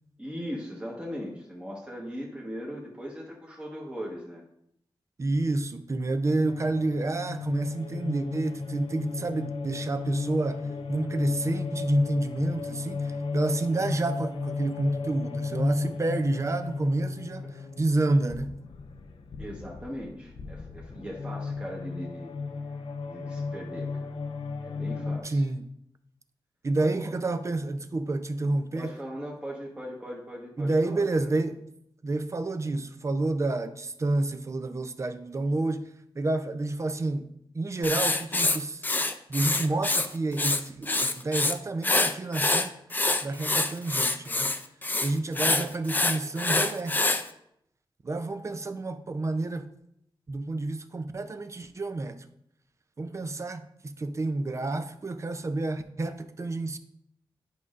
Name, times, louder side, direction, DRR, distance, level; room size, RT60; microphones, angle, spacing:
voice 1, 0.2-4.4 19.4-22.3 23.1-24.1 24.6-25.4 26.8-27.1 28.7-31.3, equal, 10° right, 1.2 m, -39 dB
voice 2, 5.2-17.4 17.8-18.5 25.2-25.6 26.6-29.0 30.6-31.6 32.0-38.8 39.3-42.7 43.2-44.5 45.0-47.2 48.0-49.7 50.3-52.2 53.0-56.8, right 2 dB, 35° right, 0.5 m, -29 dB
sound 1, 5.8-25.2, left 4 dB, 75° left, 0.5 m, -34 dB
Writing, 37.8-40.1 40.3-41.5 41.8-47.2, left 2 dB, 20° left, 0.4 m, -26 dB
10.5 x 5.3 x 2.5 m
wide cardioid pair, 150°, 9 cm